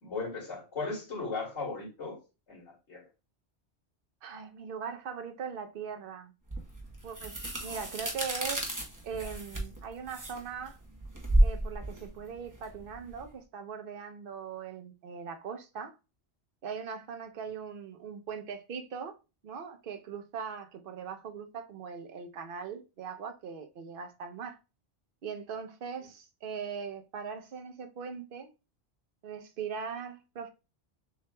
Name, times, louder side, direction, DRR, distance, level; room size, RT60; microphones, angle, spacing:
voice 1, 0.0-2.2 2.5-3.0, left 4 dB, 85° left, 2.3 m, -37 dB
voice 2, 4.2-6.3 7.0-8.7 9.0-10.8 11.4-15.9 16.6-19.2 19.4-24.6 25.2-28.5 29.2-30.5, right 6 dB, 55° right, 0.8 m, -40 dB
sound 1, 6.5-13.3, right 1 dB, 20° right, 0.9 m, -31 dB
6.7 x 2.8 x 2.2 m
omnidirectional pair, 1.2 m